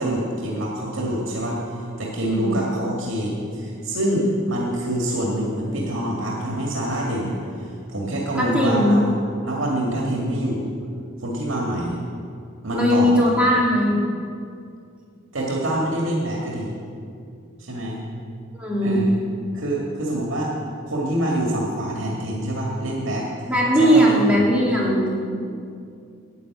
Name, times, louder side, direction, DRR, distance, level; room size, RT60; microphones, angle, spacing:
voice 1, 0.0-1.6 2.0-7.3 7.9-9.1 9.4-10.7 11.2-12.0 12.6-13.2 15.3-16.7 17.6-18.0 18.8-19.1 19.5-20.5 20.9-23.3 23.8-24.2, right 1 dB, 85° right, -2 dB, 2.0 m, -25 dB
voice 2, 2.2-2.6 8.4-9.0 12.7-14.0 18.6-19.0 23.5-25.4, equal, 5° right, -5 dB, 2.4 m, -19 dB
11.0 x 8.5 x 8.2 m, 2.4 s
head